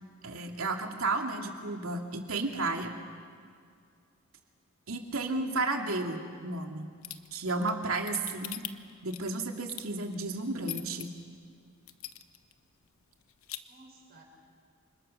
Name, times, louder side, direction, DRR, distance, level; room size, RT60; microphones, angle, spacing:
voice 1, 0.2-2.9 4.9-6.9 7.3-8.6 9.0-11.2, right 3 dB, 85° right, 3 dB, 2.7 m, -32 dB
voice 2, 5.1-5.6 13.7-14.2, right 2 dB, 45° right, -2 dB, 6.5 m, -57 dB
sound 1, 7.0-11.0 11.5-11.6 11.9-12.5 12.8-12.9 13.2-13.6, left 13 dB, 90° left, 1.1 m, -41 dB
29.0 x 26.0 x 6.6 m, 2.2 s
head